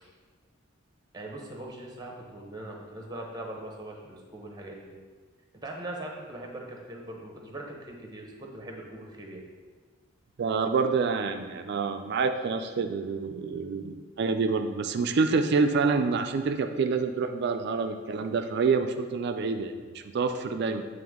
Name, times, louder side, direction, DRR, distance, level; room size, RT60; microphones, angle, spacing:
voice 1, 1.1-5.0 5.6-9.4, right 1 dB, 20° right, 0 dB, 0.9 m, -41 dB
voice 2, 10.4-20.9, right 4 dB, 55° right, 7 dB, 0.3 m, -27 dB
8.7 x 3.4 x 3.6 m, 1.5 s
head